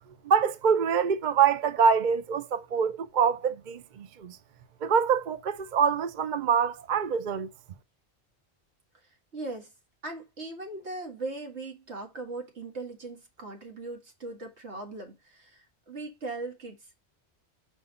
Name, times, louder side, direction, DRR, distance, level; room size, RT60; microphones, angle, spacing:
voice 1, 0.2-4.4 4.8-7.5, right 6 dB, 50° right, 0.7 m, -25 dB
voice 2, 9.3-9.7 10.0-16.9, right 2 dB, 75° right, 2.2 m, -39 dB
5.5 x 4.6 x 5.4 m
omnidirectional pair, 1.2 m